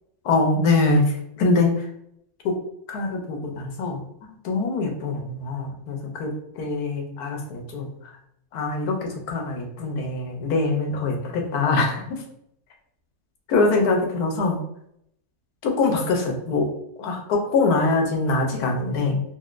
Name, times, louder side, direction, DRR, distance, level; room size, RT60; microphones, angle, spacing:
voice 1, 0.2-1.9 2.4-2.5 2.9-4.0 4.4-8.1 8.5-12.2 13.5-14.6 15.6-16.7 17.0-19.2, left 3 dB, 80° left, 1 dB, 1.2 m, -23 dB
4.1 x 2.1 x 2.4 m, 0.74 s
omnidirectional pair, 1.7 m